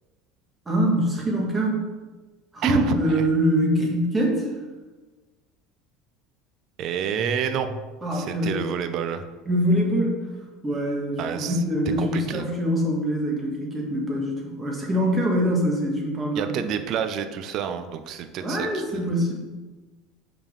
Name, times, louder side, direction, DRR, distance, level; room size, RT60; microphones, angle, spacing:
voice 1, 0.7-1.8 2.5-4.5 8.0-8.7 9.5-10.2 10.6-16.6 18.4-19.3, equal, 20° right, -1 dB, 2.1 m, -24 dB
voice 2, 2.6-3.2 6.8-7.7 8.1-9.3 11.2-11.6 12.0-12.5 16.3-19.1, right 8 dB, 50° right, 9 dB, 0.6 m, -29 dB
5.6 x 4.3 x 5.6 m, 1.3 s
hypercardioid pair, 75°, 0 cm